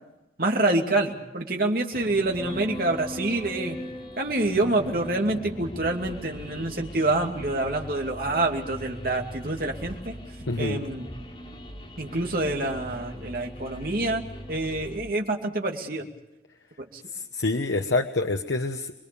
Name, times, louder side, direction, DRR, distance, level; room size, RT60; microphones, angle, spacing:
voice 1, 0.4-3.8 4.2-10.1 10.6-11.1 12.0-14.2 14.5-16.0, right 2 dB, 55° right, 2 dB, 2.7 m, -26 dB
sound 1, 1.9-15.0, equal, 30° left, 4.1 m, -40 dB
voice 2, 10.5-10.8 17.1-18.9, left 2 dB, 90° left, 5 dB, 1.0 m, -26 dB
26.0 x 22.0 x 7.0 m, 0.96 s
head